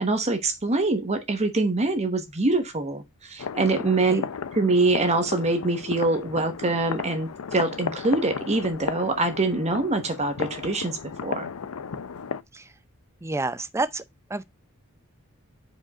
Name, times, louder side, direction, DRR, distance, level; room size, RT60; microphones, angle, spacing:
voice 1, 0.0-4.3 4.5-11.5, right 2 dB, 30° right, 0.9 m, -24 dB
sound 1, 3.4-12.4, left 6 dB, 80° left, 0.5 m, -34 dB
voice 2, 13.2-14.0 14.3-14.4, right 2 dB, 15° right, 0.5 m, -29 dB
5.2 x 5.0 x 5.2 m
head